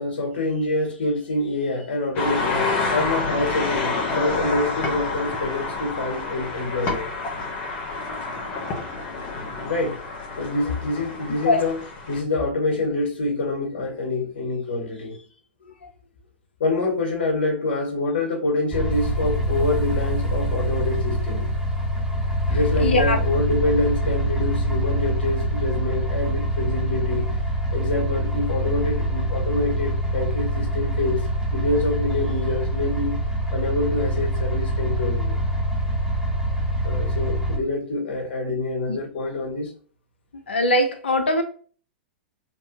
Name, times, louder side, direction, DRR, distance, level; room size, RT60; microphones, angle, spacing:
voice 1, 0.0-7.1 9.6-10.0 10.4-11.8 12.1-15.2 16.6-21.5 22.5-27.3 27.7-31.2 31.5-33.2 33.5-35.4 36.8-39.7, left 2 dB, 60° left, 1.7 m, -26 dB
sound 1, 2.1-12.2, left 3 dB, 40° left, 1.1 m, -28 dB
sound 2, 18.7-37.6, right 1 dB, 5° right, 1.0 m, -25 dB
voice 2, 22.8-23.2 38.9-39.0 40.5-41.4, left 1 dB, 80° left, 0.6 m, -21 dB
3.4 x 2.8 x 2.7 m
hypercardioid pair, 105°, 6 cm